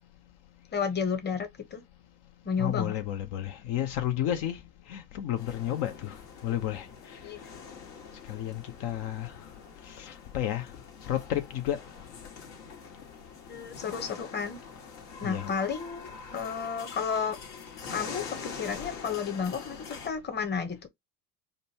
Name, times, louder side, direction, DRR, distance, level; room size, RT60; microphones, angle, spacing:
voice 1, 0.7-1.8 2.4-2.9 7.2-7.4 13.5-14.6 15.2-17.4 17.9-20.9, left 6 dB, 20° left, 1.0 m, -32 dB
voice 2, 2.6-4.6 4.9-6.2 6.4-6.9 8.3-9.3 9.9-10.7 11.1-11.8 15.2-15.5, left 11 dB, 55° left, 0.9 m, -31 dB
sound 1, 5.3-20.1, left 5 dB, 70° left, 1.7 m, -44 dB
5.2 x 2.2 x 2.8 m
hypercardioid pair, 70°, 49 cm